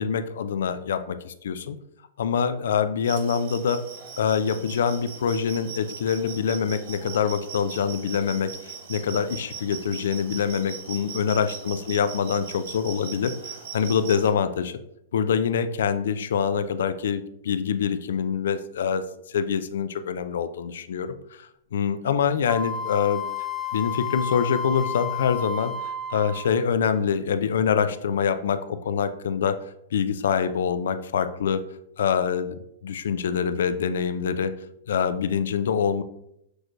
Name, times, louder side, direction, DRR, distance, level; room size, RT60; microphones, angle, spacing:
voice 1, 0.0-1.8 2.2-3.8 4.2-14.8 15.1-19.0 19.3-23.2 23.7-29.5 29.9-31.6 32.0-32.6 32.8-34.5 34.9-36.0, left 7 dB, 80° left, 11 dB, 0.3 m, -25 dB
sound 1, 3.0-14.3, right 7 dB, 60° right, 1.0 m, -40 dB
Wind instrument woodwind instrument, 22.5-26.6, left 6 dB, 5° right, 0.4 m, -31 dB
6.1 x 3.1 x 2.5 m, 0.79 s
supercardioid pair, 160°, 0 cm